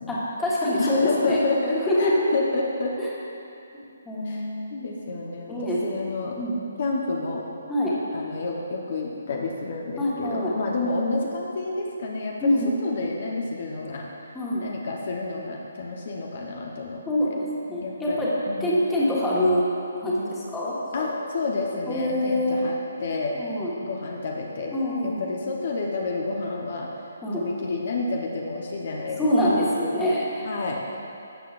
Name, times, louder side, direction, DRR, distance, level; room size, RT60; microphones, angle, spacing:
voice 1, 0.1-1.4 1.8-2.3 3.0-3.1 3.7-4.7 5.5-6.0 6.4-6.6 7.7-8.0 10.0-10.5 12.4-12.7 14.3-14.6 17.1-18.3 18.6-19.7 20.0-21.1 21.9-22.6 23.3-23.7 24.7-25.3 27.2-27.4 29.2-30.5, left 1 dB, 10° left, -8 dB, 1.5 m, -25 dB
voice 2, 0.8-2.9 4.2-4.4 4.7-6.4 6.8-7.4 8.1-12.5 12.8-14.1 14.6-17.3 17.8-18.8 20.9-23.4 23.8-24.7 25.0-26.9 27.3-29.6 30.4-30.8, left 3 dB, 55° left, -1 dB, 1.0 m, -30 dB
12.5 x 7.6 x 2.6 m, 2.7 s
hypercardioid pair, 155°, 0 cm